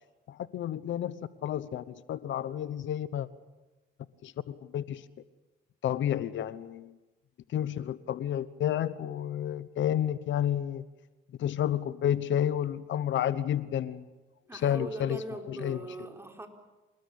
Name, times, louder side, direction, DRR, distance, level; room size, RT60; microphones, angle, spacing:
voice 1, 0.3-3.3 4.2-5.0 5.8-6.9 7.5-10.8 11.4-14.1 14.5-15.8, left 10 dB, 70° left, 15 dB, 1.0 m, -31 dB
voice 2, 14.5-16.5, right 2 dB, 10° right, 4 dB, 3.9 m, -40 dB
28.0 x 19.5 x 8.6 m, 1.1 s
cardioid pair, 90°, 20 cm